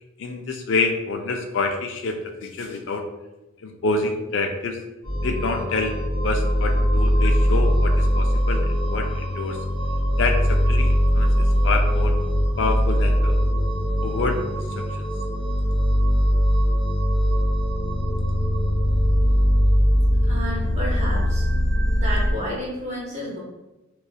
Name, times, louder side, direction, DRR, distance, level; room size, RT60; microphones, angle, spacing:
voice 1, 0.2-3.0 3.6-4.8 5.2-6.0 6.2-8.6 8.9-9.6 10.2-12.2 12.6-13.4 14.0-14.4 14.9-15.1, left 3 dB, 60° left, 4 dB, 0.3 m, -27 dB
sound 1, 5.0-22.3, equal, 20° left, 0.8 m, -21 dB
voice 2, 20.3-21.5 22.0-23.4, equal, 35° right, -6 dB, 0.7 m, -31 dB
2.7 x 2.3 x 2.3 m, 1.0 s
head